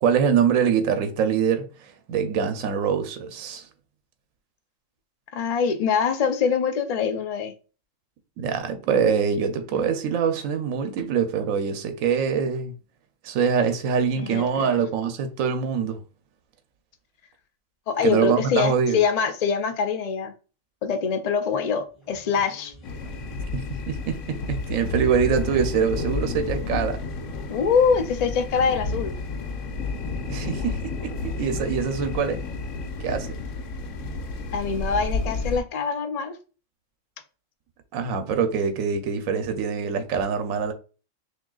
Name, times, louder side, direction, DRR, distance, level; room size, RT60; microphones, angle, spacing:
voice 1, 0.0-3.6 8.4-12.7 13.2-16.0 18.0-19.0 23.5-27.0 30.3-32.4 33.0-33.3 34.0-34.1 37.9-40.7, right 7 dB, 80° right, 1.0 m, -24 dB
voice 2, 5.3-7.5 14.1-14.8 17.9-20.3 20.8-22.7 27.5-29.1 34.5-36.4, left 6 dB, 85° left, 0.3 m, -24 dB
sound 1, 21.8-32.9, right 1 dB, ahead, 2.1 m, -48 dB
sound 2, 22.8-35.6, left 3 dB, 70° left, 1.1 m, -31 dB
6.0 x 2.8 x 2.3 m
omnidirectional pair, 1.4 m